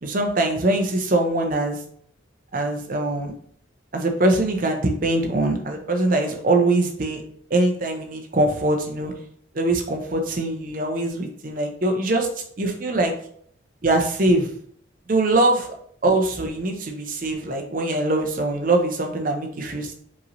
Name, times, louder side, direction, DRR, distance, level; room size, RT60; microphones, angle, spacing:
voice 1, 0.0-1.8 2.5-3.3 3.9-7.2 7.5-9.1 9.5-12.3 12.6-13.1 13.8-14.5 15.1-15.7 16.0-19.9, right 2 dB, 45° right, 3 dB, 0.6 m, -22 dB
5.3 x 3.1 x 2.6 m, 0.63 s
head